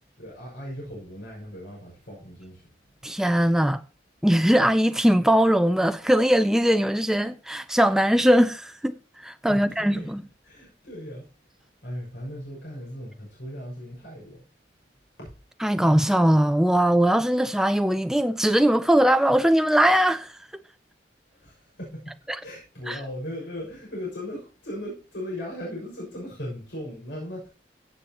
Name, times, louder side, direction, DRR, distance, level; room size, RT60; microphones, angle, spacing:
voice 1, 0.2-2.7 9.5-10.1 10.4-11.3 11.8-14.4 15.2-15.3 21.3-22.1 22.4-27.5, left 1 dB, 80° left, 6.3 m, -37 dB
voice 2, 3.0-3.8 4.2-10.2 15.6-20.3 22.3-22.4 22.9-23.0, equal, 5° right, 0.4 m, -20 dB
16.0 x 7.2 x 2.9 m
head